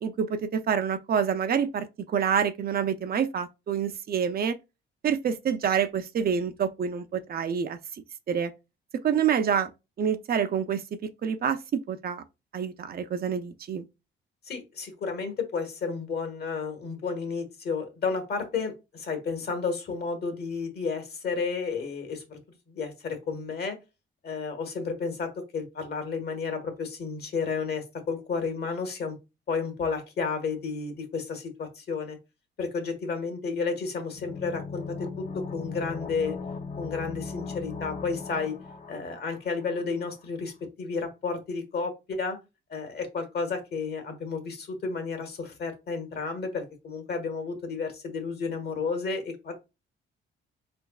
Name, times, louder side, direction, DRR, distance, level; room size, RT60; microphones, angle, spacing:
voice 1, 0.0-4.6 5.0-8.5 9.0-9.7 10.0-12.2 12.5-13.8, right 7 dB, 50° right, 0.5 m, -27 dB
voice 2, 14.4-22.4 22.7-23.8 24.2-29.2 29.5-32.2 32.6-36.4 36.8-38.6 38.9-42.4 42.7-49.5, left 4 dB, 55° left, 1.5 m, -32 dB
sound 1, 34.1-39.8 40.1-40.2, left 4 dB, 35° left, 0.7 m, -38 dB
4.5 x 3.4 x 2.3 m
cardioid pair, 90°, 20 cm